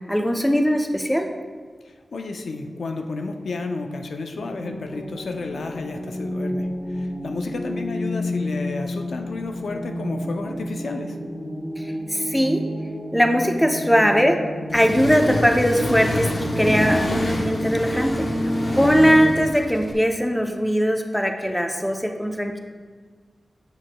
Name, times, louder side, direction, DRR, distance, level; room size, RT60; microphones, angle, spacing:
voice 1, 0.1-1.3 11.8-12.6 13.1-14.4 14.7-18.3 18.7-22.6, equal, 5° left, 4 dB, 0.5 m, -20 dB
voice 2, 1.8-11.2 18.8-19.2, left 3 dB, 80° left, 4 dB, 0.4 m, -32 dB
sound 1, 4.3-19.2, equal, 20° left, 1.4 m, -30 dB
Accelerating revving vroom, 14.7-19.9, left 1 dB, 45° left, 0.8 m, -27 dB
8.0 x 6.2 x 2.2 m, 1.5 s
wide cardioid pair, 75°, 0 cm